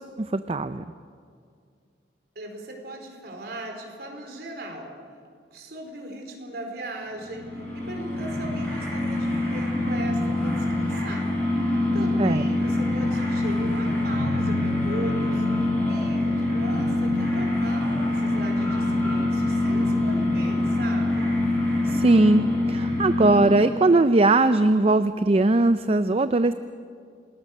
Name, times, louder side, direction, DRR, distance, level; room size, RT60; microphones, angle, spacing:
voice 1, 0.2-0.8 12.2-12.4 21.9-26.5, right 2 dB, 35° right, 11 dB, 0.5 m, -20 dB
voice 2, 2.3-4.9 5.5-11.6 11.9-21.3, right 1 dB, 60° right, 2 dB, 4.3 m, -38 dB
sound 1, 7.1-23.8, left 2 dB, 10° left, 7.8 m, -25 dB
28.5 x 20.0 x 6.6 m, 2.3 s
head